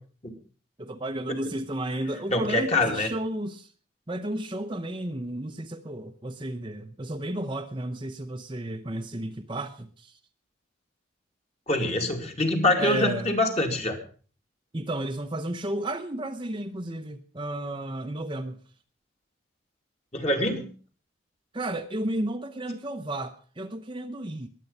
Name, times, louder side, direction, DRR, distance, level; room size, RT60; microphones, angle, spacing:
voice 1, 0.8-3.7 4.1-10.2 12.8-13.3 14.7-18.6 21.5-24.5, right 1 dB, 25° right, 6 dB, 0.8 m, -33 dB
voice 2, 2.3-3.1 11.7-14.0 20.1-20.6, left 2 dB, 30° left, 3 dB, 2.4 m, -25 dB
21.5 x 8.6 x 5.5 m, 0.41 s
head